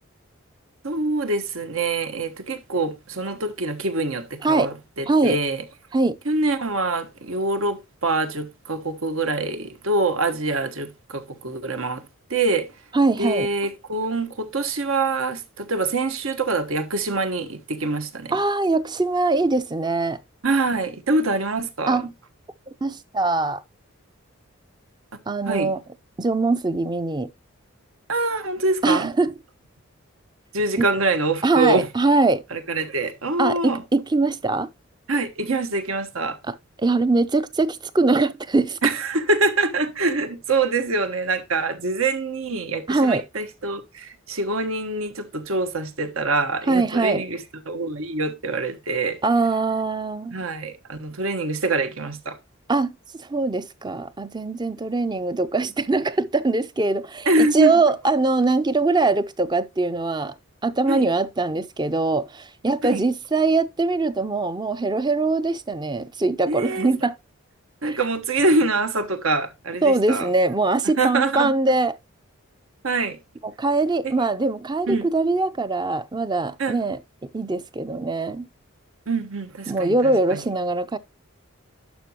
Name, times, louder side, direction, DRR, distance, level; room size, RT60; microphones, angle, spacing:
voice 1, 0.8-5.6 6.2-12.0 12.3-12.7 13.2-18.3 20.4-22.1 25.5-25.7 28.1-29.1 30.5-31.9 32.5-33.8 35.1-36.4 38.8-47.4 47.7-49.2 50.3-52.4 57.2-57.8 60.9-61.1 62.8-63.0 66.5-66.9 67.8-70.3 71.0-71.5 72.8-73.2 74.0-74.1 74.9-75.1 76.6-76.8 79.1-80.4, right 2 dB, 75° right, 1.3 m, -24 dB
voice 2, 4.4-4.7 5.1-5.4 5.9-6.2 12.9-13.5 18.3-20.2 21.9-22.1 22.8-23.6 25.3-25.8 26.2-27.3 28.8-29.3 31.4-32.4 33.4-34.7 36.5-38.8 42.9-43.2 46.7-47.2 49.2-50.3 52.7-52.9 53.2-60.3 60.6-67.1 67.9-68.0 69.8-72.0 73.4-78.5 79.7-81.0, right 3 dB, 20° right, 0.5 m, -22 dB
11.5 x 5.9 x 2.9 m
head